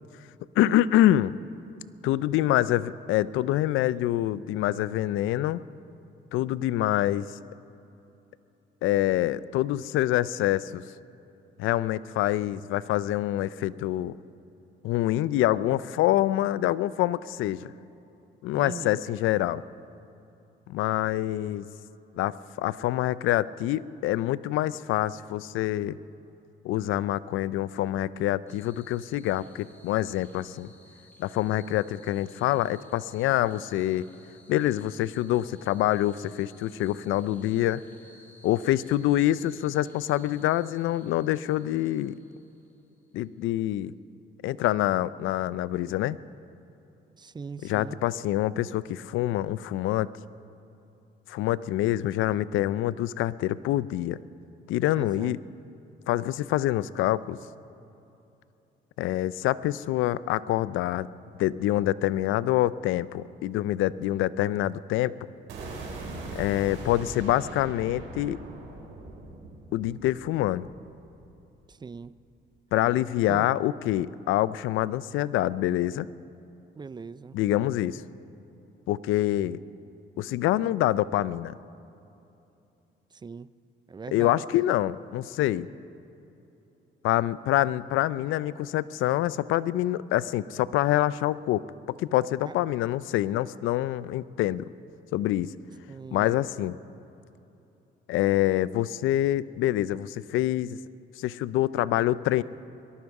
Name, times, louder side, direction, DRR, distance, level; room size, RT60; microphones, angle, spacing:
voice 1, 0.6-1.3 2.0-5.6 6.3-7.3 8.8-10.8 11.6-14.2 14.8-17.7 18.4-19.6 20.7-21.6 22.2-26.0 26.6-30.7 31.2-34.0 34.5-37.8 38.4-42.2 43.1-43.9 44.4-46.2 47.6-50.1 51.3-54.2 54.7-55.4 56.1-57.4 59.0-61.1 61.4-65.1 66.3-68.4 69.7-70.7 72.7-76.1 77.3-78.0 78.9-79.6 80.2-81.5 84.1-85.7 87.0-91.6 92.0-94.7 95.1-95.5 96.1-96.8 98.1-100.8 101.2-102.4, left 14 dB, 85° left, 18 dB, 0.4 m, -26 dB
voice 2, 18.5-19.0 47.2-48.0 54.9-55.3 71.7-72.1 73.3-73.5 76.8-77.3 83.2-83.5 83.9-84.4 92.4-92.5 95.9-96.3, right 5 dB, 20° right, 17 dB, 0.4 m, -40 dB
sound 1, 28.5-43.3, left 1 dB, 10° left, 2.8 m, -58 dB
sound 2, 65.5-71.5, right 2 dB, 85° right, 3.8 m, -40 dB
22.5 x 12.5 x 4.7 m, 2.8 s
cardioid pair, 90°, 20 cm